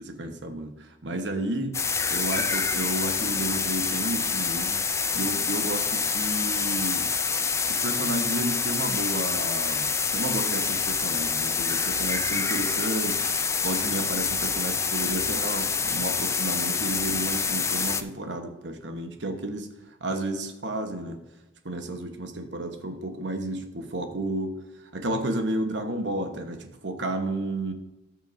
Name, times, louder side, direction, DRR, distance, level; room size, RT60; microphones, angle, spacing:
voice 1, 0.0-1.8 2.1-4.9 5.1-7.1 7.7-13.2 13.6-19.7 20.0-21.2 21.6-27.7, right 1 dB, 65° right, 6 dB, 1.1 m, -32 dB
sound 1, 1.7-18.0, left 5 dB, 15° left, 0.4 m, -27 dB
17.5 x 6.3 x 2.6 m, 1.0 s
head